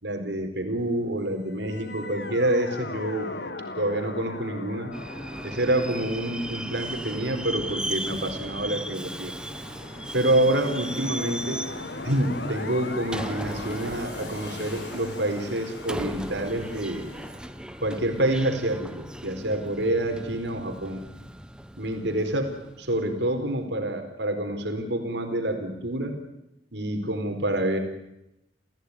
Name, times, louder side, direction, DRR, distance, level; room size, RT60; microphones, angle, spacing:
voice 1, 0.0-3.3 3.8-4.9 5.4-9.3 10.1-11.7 12.0-17.1 17.8-21.1 21.8-26.2 26.7-27.8, right 1 dB, 80° right, 6 dB, 4.3 m, -27 dB
sound 1, 1.5-8.7 10.6-18.4, left 3 dB, 70° left, 1.6 m, -40 dB
Subway metro underground, 4.9-23.4, right 1 dB, 5° right, 1.0 m, -37 dB
sound 2, 8.7-17.3, left 1 dB, 85° left, 5.9 m, -44 dB
28.5 x 16.0 x 9.8 m, 0.87 s
head